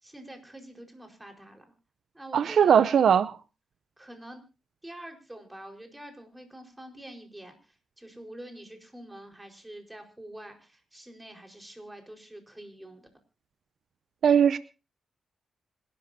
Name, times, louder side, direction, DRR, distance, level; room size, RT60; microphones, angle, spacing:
voice 1, 0.0-1.7 2.1-3.0 4.0-4.4 4.8-13.1, right 1 dB, 10° right, 4 dB, 4.6 m, -46 dB
voice 2, 2.3-3.3 14.2-14.6, right 8 dB, 75° right, 15 dB, 0.6 m, -20 dB
26.0 x 12.0 x 2.8 m, 0.32 s
cardioid pair, 80°, 0 cm